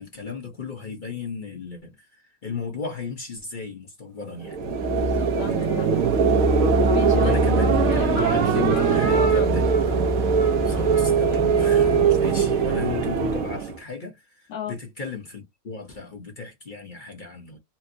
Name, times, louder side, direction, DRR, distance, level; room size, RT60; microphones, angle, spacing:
voice 1, 0.0-4.6 7.2-9.6 10.6-17.6, left 4 dB, 40° left, 0.8 m, -35 dB
sound 1, 4.4-13.8, right 5 dB, 60° right, 1.1 m, -21 dB
voice 2, 4.9-5.9 6.4-6.5 6.9-7.4 7.9-9.6 14.5-14.8, left 9 dB, 80° left, 1.5 m, -34 dB
4.3 x 2.0 x 2.6 m
omnidirectional pair, 1.8 m